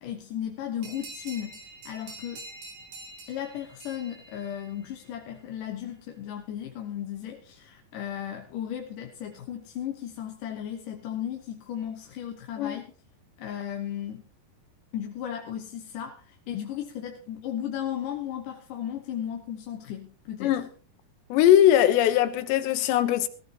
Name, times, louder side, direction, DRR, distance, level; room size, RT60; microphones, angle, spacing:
voice 1, 0.0-1.5 1.9-2.4 3.3-12.9 13.4-14.2 14.9-20.7, left 10 dB, 65° left, 2.3 m, -35 dB
sound 1, 0.8-5.1, right 2 dB, 60° right, 4.8 m, -46 dB
voice 2, 21.3-23.3, left 11 dB, 85° left, 3.2 m, -20 dB
19.0 x 15.0 x 2.9 m
omnidirectional pair, 4.9 m